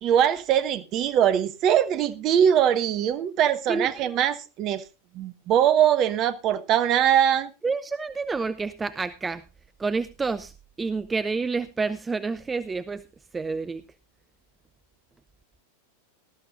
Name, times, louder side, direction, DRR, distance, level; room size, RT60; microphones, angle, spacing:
voice 1, 0.0-4.8 5.1-7.5, right 9 dB, 35° right, 1.0 m, -22 dB
voice 2, 7.6-9.4 9.8-10.5 10.8-13.0 13.3-13.8, right 4 dB, 15° right, 0.6 m, -28 dB
19.0 x 13.0 x 2.6 m
figure-of-eight pair, 90°, 0 cm